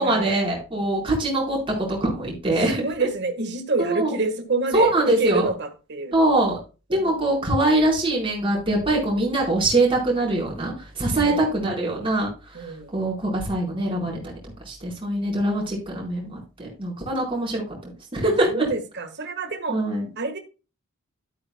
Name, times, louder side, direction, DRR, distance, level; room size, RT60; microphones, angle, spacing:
voice 1, 0.0-1.6 1.9-2.8 3.8-4.1 4.7-5.5 6.1-6.6 6.9-12.3 12.9-14.3 14.7-17.6 18.1-18.7 19.7-20.0, right 2 dB, 25° right, 4.3 m, -23 dB
voice 2, 2.7-6.2 6.9-7.1 11.1-11.5 12.5-13.0 18.5-19.8 20.2-20.4, right 3 dB, 50° right, 1.4 m, -27 dB
12.0 x 8.7 x 2.2 m
head